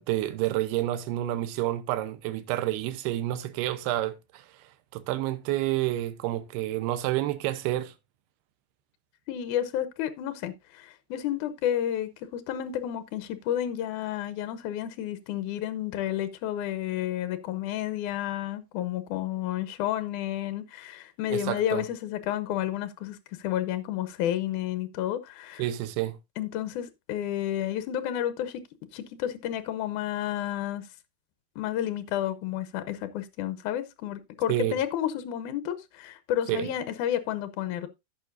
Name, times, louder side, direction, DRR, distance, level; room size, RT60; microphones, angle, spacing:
voice 1, 0.0-4.5 4.9-7.9 21.3-21.9 25.6-26.2 34.5-34.8 36.5-36.7, right 14 dB, 80° right, 2.8 m, -29 dB
voice 2, 9.3-25.6 26.4-28.6 28.9-30.9 31.6-37.9, left 11 dB, 85° left, 1.8 m, -31 dB
16.0 x 5.8 x 2.6 m
omnidirectional pair, 4.6 m